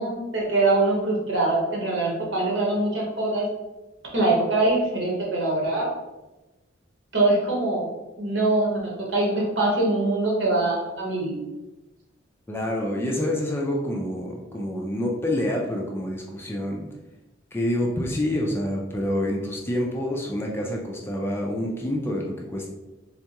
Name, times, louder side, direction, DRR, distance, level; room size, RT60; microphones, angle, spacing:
voice 1, 0.0-3.5 4.1-5.9 7.1-7.9 8.2-11.4, right 2 dB, 65° right, -2 dB, 1.1 m, -23 dB
voice 2, 12.5-16.9 17.5-22.7, left 1 dB, 10° left, -1 dB, 0.4 m, -27 dB
3.5 x 3.4 x 2.9 m, 1.1 s
head